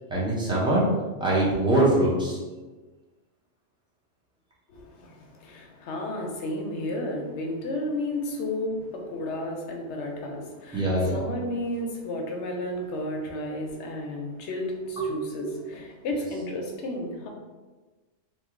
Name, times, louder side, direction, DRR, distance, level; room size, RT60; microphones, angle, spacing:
voice 1, 0.1-0.8 1.2-2.4 10.7-11.2 15.0-15.1 15.4-15.5, right 1 dB, 5° right, -7 dB, 0.7 m, -23 dB
voice 2, 4.7-17.3, left 1 dB, 70° left, 1 dB, 0.9 m, -32 dB
3.0 x 2.2 x 3.6 m, 1.3 s
omnidirectional pair, 1.3 m